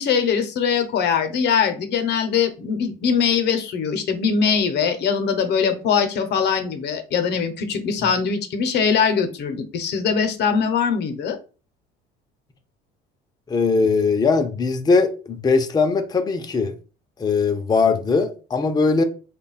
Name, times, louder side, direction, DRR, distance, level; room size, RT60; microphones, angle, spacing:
voice 1, 0.0-11.4, left 6 dB, 60° left, 0.8 m, -22 dB
voice 2, 13.5-16.7 17.2-19.0, left 4 dB, 20° left, 0.6 m, -20 dB
3.4 x 2.2 x 4.0 m
supercardioid pair, 95°, 19 cm